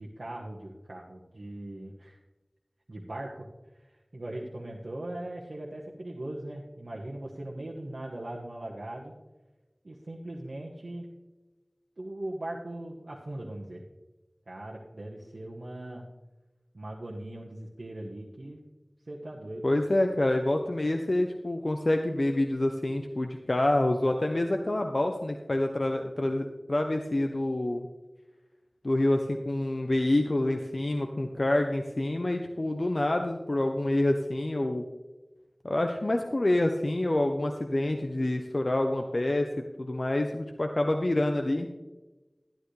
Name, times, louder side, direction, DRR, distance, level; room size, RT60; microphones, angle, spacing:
voice 1, 0.0-2.2 2.9-3.5 3.7-9.1 9.8-11.1 12.0-13.8 14.5-16.0 16.7-18.6 19.1-19.7, right 1 dB, 90° right, -4 dB, 1.2 m, -40 dB
voice 2, 19.6-27.9 28.8-34.9 35.6-39.5 39.8-41.7, left 1 dB, 60° left, 4 dB, 0.7 m, -27 dB
12.0 x 11.5 x 3.3 m, 1.1 s
wide cardioid pair, 50°, 0 cm